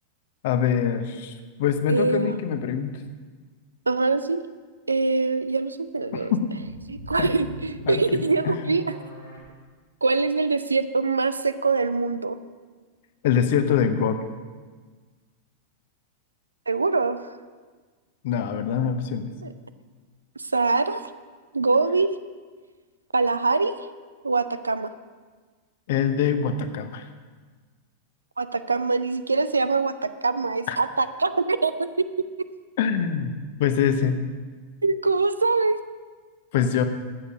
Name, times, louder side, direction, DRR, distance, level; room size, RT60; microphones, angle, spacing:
voice 1, 0.4-3.0 6.1-6.5 7.2-7.3 7.9-8.7 13.2-14.2 18.2-19.3 25.9-27.0 30.7-30.8 32.8-33.3 33.6-34.2 36.5-36.8, left 7 dB, 55° left, 9 dB, 0.9 m, -24 dB
voice 2, 1.9-2.3 3.9-4.4 4.9-6.3 6.9-8.8 10.0-12.4 16.7-17.3 19.4-19.5 20.4-21.0 21.5-22.1 23.1-23.8 24.2-24.9 28.4-31.9 34.8-35.8, right 3 dB, 80° right, 13 dB, 0.5 m, -23 dB
sound 1, 6.2-9.4, equal, 85° left, 4.2 m, -41 dB
13.5 x 8.3 x 5.1 m, 1.4 s
figure-of-eight pair, 90°, 0 cm